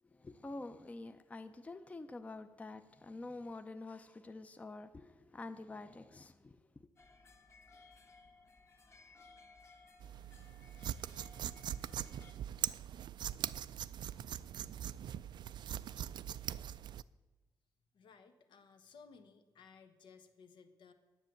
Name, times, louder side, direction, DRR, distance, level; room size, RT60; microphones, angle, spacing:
voice 1, 0.0-6.9, left 2 dB, 20° left, 0.5 m, -48 dB
sound 1, 7.0-12.3, left 3 dB, 35° left, 1.4 m, -61 dB
sound 2, 10.0-17.0, right 10 dB, 70° right, 0.3 m, -42 dB
voice 2, 17.9-20.9, left 5 dB, 85° left, 1.2 m, -59 dB
10.0 x 8.2 x 7.8 m
wide cardioid pair, 145°, 8 cm